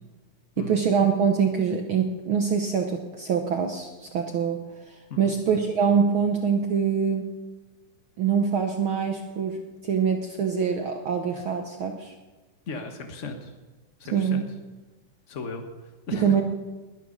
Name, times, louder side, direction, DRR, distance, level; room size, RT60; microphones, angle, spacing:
voice 1, 0.6-4.6 4.9-7.3 8.2-12.1 14.1-14.5 16.1-16.4, right 6 dB, 65° right, 4 dB, 1.3 m, -24 dB
voice 2, 12.7-13.5 14.0-14.4 15.3-16.4, left 3 dB, 80° left, 5 dB, 0.6 m, -36 dB
21.0 x 9.5 x 6.4 m, 1.2 s
omnidirectional pair, 3.6 m